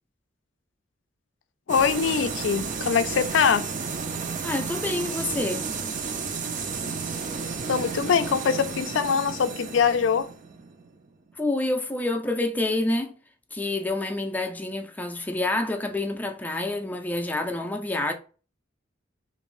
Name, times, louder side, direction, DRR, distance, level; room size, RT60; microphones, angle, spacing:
voice 1, 1.7-3.7 7.7-10.3, left 6 dB, 70° left, 0.4 m, -23 dB
sound 1, 1.7-11.3, right 5 dB, 40° right, 0.5 m, -32 dB
voice 2, 4.4-5.7 11.4-13.1 13.5-18.1, left 2 dB, 10° left, 0.4 m, -28 dB
3.5 x 2.6 x 3.1 m
head